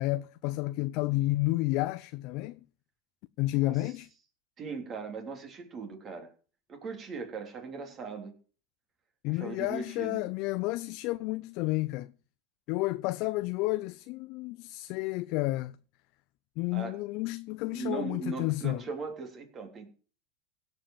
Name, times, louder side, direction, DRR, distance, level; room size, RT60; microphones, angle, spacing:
voice 1, 0.0-2.6 3.4-4.1 9.2-12.1 12.7-15.8 16.6-18.8, left 19 dB, 55° left, 0.6 m, -31 dB
voice 2, 4.6-6.3 6.7-8.3 9.3-10.2 16.7-17.0 17.6-19.9, right 4 dB, 30° right, 3.5 m, -39 dB
16.5 x 5.6 x 7.4 m
supercardioid pair, 115°, 0 cm